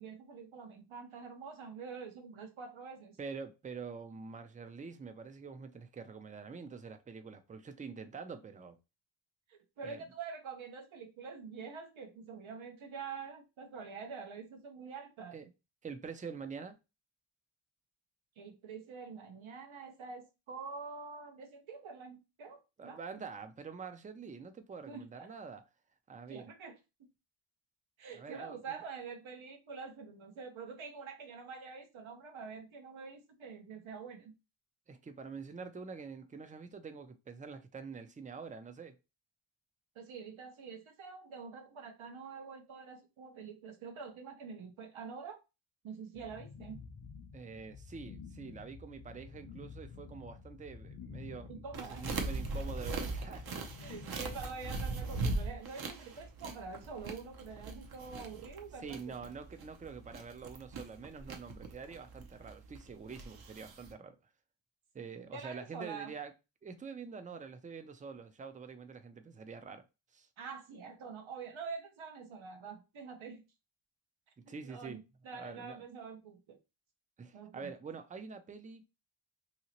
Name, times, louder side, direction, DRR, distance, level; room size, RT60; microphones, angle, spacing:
voice 1, 0.0-3.2 9.5-15.5 18.4-23.0 24.9-25.3 26.3-27.1 28.0-34.3 39.9-45.4 45.8-46.8 51.5-52.1 53.8-59.1 65.3-66.1 70.4-73.5 74.6-76.6 77.3-77.7, right 5 dB, 80° right, 0.8 m, -46 dB
voice 2, 3.2-8.8 9.8-10.1 15.3-15.5 15.8-16.8 22.8-25.6 26.1-26.5 28.1-28.8 34.9-39.0 47.3-53.4 58.8-64.2 64.9-66.3 66.6-69.8 70.1-70.3 74.4-75.0 75.3-75.8 77.2-78.8, right 5 dB, 20° right, 0.3 m, -46 dB
sound 1, 46.1-54.7, left 5 dB, 45° left, 0.6 m, -50 dB
sound 2, 51.7-63.9, right 3 dB, 50° right, 0.7 m, -40 dB
2.8 x 2.8 x 2.8 m
wide cardioid pair, 115°, 47 cm